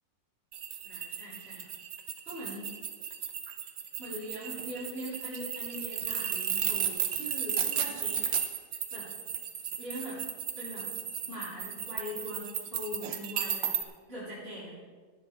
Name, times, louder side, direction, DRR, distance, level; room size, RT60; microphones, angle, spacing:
sound 1, 0.5-13.8, right 8 dB, 65° right, 1.6 m, -34 dB
voice 1, 0.8-1.7 2.3-2.7 4.0-8.2 8.9-9.1 9.8-10.2 10.6-10.9 11.3-13.8 14.1-14.7, equal, 30° right, -12 dB, 4.4 m, -41 dB
18.0 x 12.0 x 3.6 m, 1.5 s
omnidirectional pair, 2.0 m